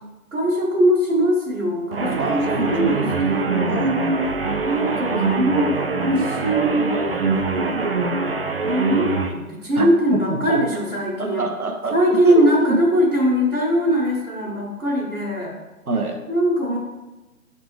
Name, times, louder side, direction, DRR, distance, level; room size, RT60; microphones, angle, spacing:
voice 1, 0.3-3.7 4.6-7.7 8.6-11.4 11.9-15.5 16.3-16.8, equal, 60° right, -7 dB, 1.8 m, -21 dB
sound 1, 1.9-9.3, right 3 dB, 40° right, 0.5 m, -23 dB
voice 2, 2.2-3.0 3.7-4.0 9.8-9.9 10.3-10.6 11.2-12.8 15.9-16.2, right 3 dB, 75° right, 3 dB, 1.2 m, -26 dB
9.7 x 4.0 x 3.2 m, 1.2 s
figure-of-eight pair, 140°, 44 cm